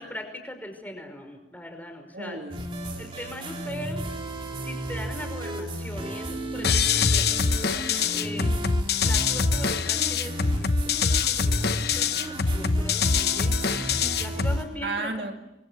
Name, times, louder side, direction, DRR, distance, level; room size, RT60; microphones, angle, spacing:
voice 1, 0.0-2.4 3.0-4.0 4.6-8.5 9.0-12.1 12.5-15.3, left 1 dB, 10° left, 5 dB, 5.2 m, -40 dB
voice 2, 2.1-3.2 14.8-15.4, right 3 dB, 60° right, 4 dB, 2.4 m, -34 dB
sound 1, 2.5-14.6, right 1 dB, 30° right, 3.3 m, -33 dB
sound 2, 6.6-14.6, left 5 dB, 60° left, 1.0 m, -24 dB
29.0 x 24.0 x 8.2 m, 0.92 s
head